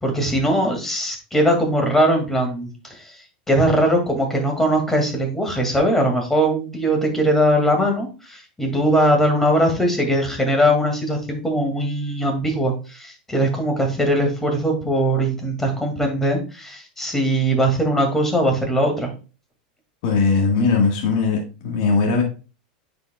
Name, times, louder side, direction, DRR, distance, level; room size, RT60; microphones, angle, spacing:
voice 1, 0.0-3.1 3.5-19.1, equal, 5° left, 3 dB, 2.2 m, -20 dB
voice 2, 20.0-22.2, left 4 dB, 60° left, 1 dB, 1.6 m, -19 dB
9.2 x 5.1 x 2.3 m, 0.34 s
supercardioid pair, 120°, 5 cm